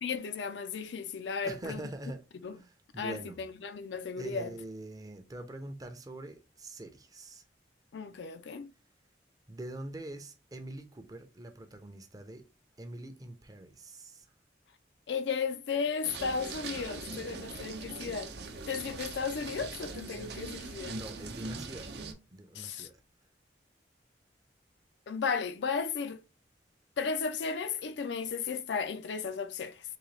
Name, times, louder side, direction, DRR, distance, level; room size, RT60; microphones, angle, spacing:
voice 1, 0.0-1.9 2.4-2.6 3.0-4.5 7.9-8.7 15.1-18.3 18.7-21.0 22.5-22.9 25.1-26.2 27.0-29.8, left 5 dB, 75° left, 0.4 m, -34 dB
voice 2, 1.4-2.2 2.5-3.4 4.2-7.4 9.5-12.4 12.8-14.3 20.9-21.9 22.3-23.0, right 1 dB, 20° right, 0.5 m, -44 dB
sound 1, 16.0-22.1, right 3 dB, 65° right, 0.7 m, -41 dB
3.9 x 2.8 x 3.2 m
head